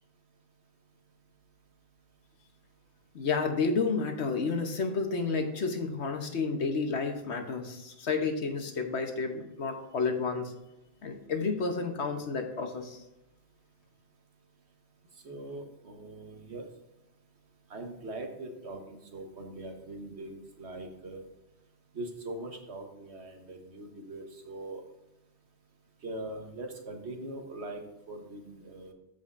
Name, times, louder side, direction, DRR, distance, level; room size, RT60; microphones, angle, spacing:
voice 1, 3.1-10.5 11.0-13.0, left 4 dB, 65° left, 5 dB, 1.3 m, -31 dB
voice 2, 15.2-16.7 17.7-21.2 21.9-24.8 26.0-28.9, right 2 dB, 65° right, 3 dB, 1.5 m, -41 dB
14.0 x 5.2 x 2.6 m, 0.92 s
omnidirectional pair, 1.2 m